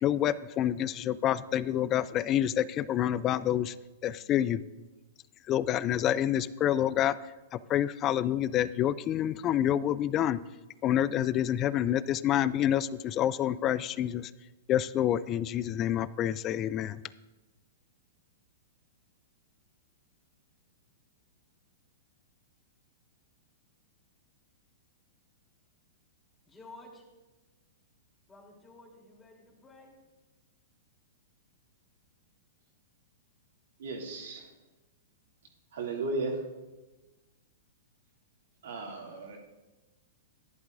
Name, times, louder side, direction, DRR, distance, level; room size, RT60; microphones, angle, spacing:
voice 1, 0.0-3.7 4.0-4.6 5.5-7.2 7.5-10.4 10.8-14.3 14.7-17.0, left 11 dB, 30° left, 0.4 m, -28 dB
voice 2, 26.5-27.0 28.3-29.9, left 2 dB, 15° left, 3.3 m, -52 dB
voice 3, 33.8-34.5 35.7-36.4 38.6-39.4, right 3 dB, 70° right, 2.5 m, -35 dB
14.0 x 11.0 x 2.6 m
hypercardioid pair, 115°, 0 cm